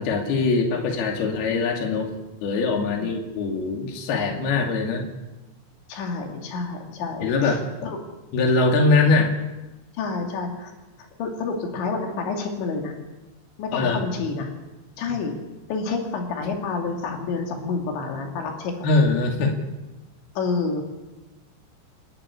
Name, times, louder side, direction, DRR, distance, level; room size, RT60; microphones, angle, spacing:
voice 1, 0.0-2.1 2.4-5.0 7.2-7.9 8.3-9.3 13.7-14.0 18.8-19.5, left 3 dB, 65° left, 1 dB, 4.3 m, -22 dB
voice 2, 5.9-7.6 7.8-8.0 10.0-10.7 11.2-12.9 13.6-14.5 15.0-15.4 15.7-18.9 20.4-20.8, left 4 dB, 85° left, 2 dB, 4.9 m, -28 dB
28.0 x 11.5 x 9.8 m, 1.1 s
omnidirectional pair, 5.1 m